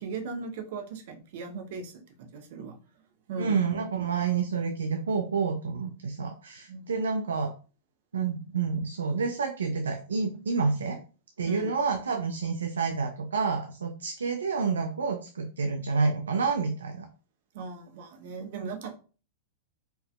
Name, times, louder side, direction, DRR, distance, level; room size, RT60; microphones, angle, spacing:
voice 1, 0.0-2.8 3.3-3.6 6.7-6.9 11.4-11.7 17.5-19.0, right 4 dB, 60° right, 5 dB, 0.8 m, -38 dB
voice 2, 3.4-7.5 8.1-11.0 11.4-17.1, right 5 dB, 85° right, 6 dB, 0.4 m, -29 dB
4.4 x 2.6 x 2.3 m, 0.37 s
hypercardioid pair, 105°, 0 cm